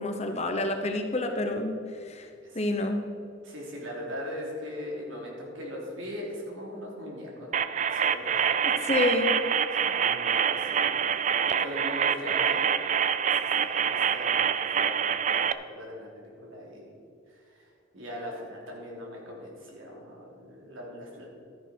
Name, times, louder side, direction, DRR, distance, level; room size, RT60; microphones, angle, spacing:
voice 1, 0.0-1.7 2.0-2.3 2.5-3.0 8.8-9.3, left 2 dB, 30° left, 4 dB, 0.9 m, -28 dB
voice 2, 3.4-9.2 9.7-16.9 17.3-21.3, equal, 75° right, -2 dB, 3.4 m, -40 dB
sound 1, 7.5-15.5, right 8 dB, 35° right, 0.3 m, -26 dB
12.5 x 10.5 x 4.6 m, 2.5 s
head